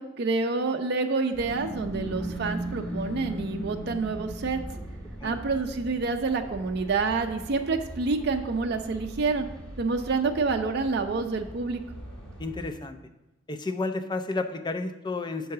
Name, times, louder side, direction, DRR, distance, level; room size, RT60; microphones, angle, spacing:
voice 1, 0.0-4.6 5.2-9.5 9.8-11.8, right 4 dB, 55° right, 5 dB, 0.5 m, -28 dB
sound 1, 1.3-12.7, right 1 dB, 5° left, 1.7 m, -38 dB
voice 2, 12.4-13.0 13.5-15.5, left 3 dB, 25° left, 7 dB, 0.5 m, -31 dB
5.7 x 4.7 x 6.5 m, 0.96 s
head